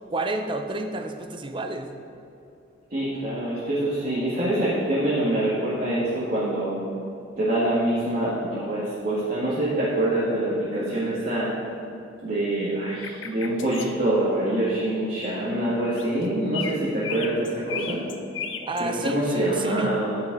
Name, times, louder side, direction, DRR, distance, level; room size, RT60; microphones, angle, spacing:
voice 1, 0.1-1.9 18.7-19.9, right 2 dB, 25° right, 6 dB, 0.6 m, -30 dB
voice 2, 2.9-6.8 7.4-11.5 12.2-18.0 18.8-20.2, right 1 dB, 50° right, -11 dB, 2.0 m, -25 dB
sound 1, 13.0-13.9 15.8-16.2 16.5-19.1, left 7 dB, 85° left, 0.7 m, -34 dB
14.5 x 5.5 x 4.0 m, 2.7 s
head